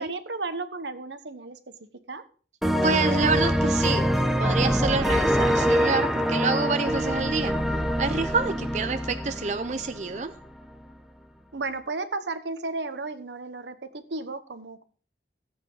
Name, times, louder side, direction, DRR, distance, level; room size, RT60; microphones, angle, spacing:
voice 1, 0.0-2.2 11.5-14.8, right 3 dB, 80° right, 11 dB, 1.1 m, -34 dB
sound 1, 2.6-10.2, equal, ahead, 0.8 m, -24 dB
voice 2, 2.8-4.1 4.4-7.6 8.0-10.3, right 4 dB, 40° right, 9 dB, 0.6 m, -27 dB
15.5 x 8.3 x 3.9 m, 0.41 s
head